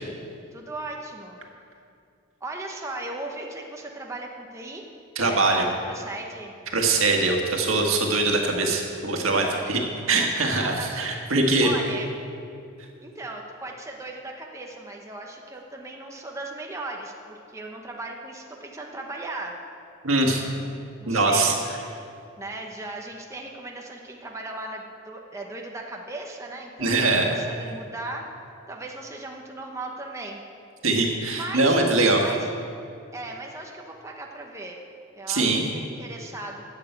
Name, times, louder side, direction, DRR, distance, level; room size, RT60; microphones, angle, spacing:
voice 1, 0.5-1.4 2.4-4.8 5.2-6.5 9.6-9.8 10.4-11.3 11.6-12.1 13.0-19.6 20.5-20.7 21.0-21.5 22.4-27.0 27.2-28.2 28.7-30.4 31.4-31.8 32.2-32.4 33.1-34.8 35.1-35.5 35.7-36.6, right 2 dB, 15° right, 0 dB, 1.0 m, -37 dB
voice 2, 5.2-5.7 6.7-9.8 10.1-11.7 20.0-20.4 21.1-21.6 26.8-27.4 30.8-32.3 35.3-35.6, right 2 dB, 85° right, 1 dB, 1.8 m, -22 dB
12.0 x 7.3 x 8.1 m, 2.5 s
head